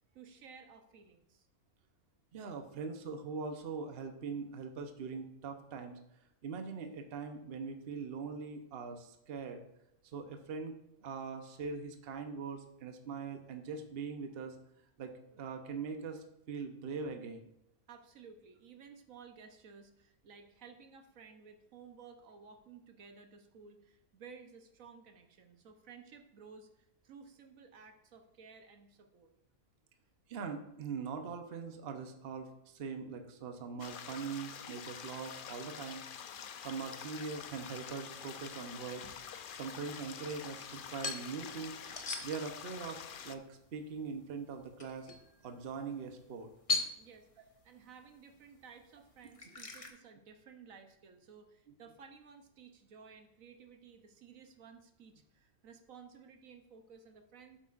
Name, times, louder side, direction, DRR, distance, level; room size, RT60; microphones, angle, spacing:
voice 1, 0.1-1.5 17.9-29.3 47.0-57.6, right 6 dB, 75° right, 6 dB, 1.2 m, -56 dB
voice 2, 2.3-6.0 6.4-9.6 10.1-14.6 15.0-17.5 30.3-36.0 36.6-39.0 39.5-41.8 42.2-45.1 45.4-46.5, right 5 dB, 50° right, 5 dB, 1.0 m, -42 dB
sound 1, 33.8-43.4, left 8 dB, 60° left, 0.5 m, -47 dB
sound 2, 37.3-49.9, left 3 dB, 25° left, 1.0 m, -44 dB
11.5 x 8.0 x 2.5 m, 0.82 s
omnidirectional pair, 1.5 m